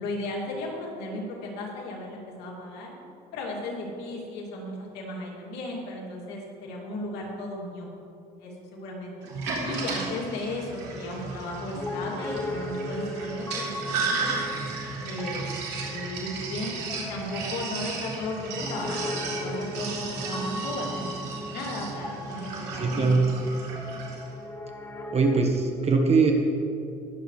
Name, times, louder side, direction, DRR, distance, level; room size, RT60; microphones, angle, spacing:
voice 1, 0.0-2.9 3.3-7.9 8.4-9.1 9.6-14.4 15.0-23.2, left 1 dB, 90° left, -3 dB, 2.6 m, -35 dB
Sink (filling or washing), 9.2-24.3, right 4 dB, 80° right, 2.7 m, -35 dB
Piano, 11.8-25.5, left 1 dB, 15° left, 0.8 m, -37 dB
voice 2, 22.7-23.2 25.1-26.3, right 4 dB, 40° right, 2 dB, 1.3 m, -21 dB
20.0 x 7.9 x 3.2 m, 2.6 s
cardioid pair, 110°, 17 cm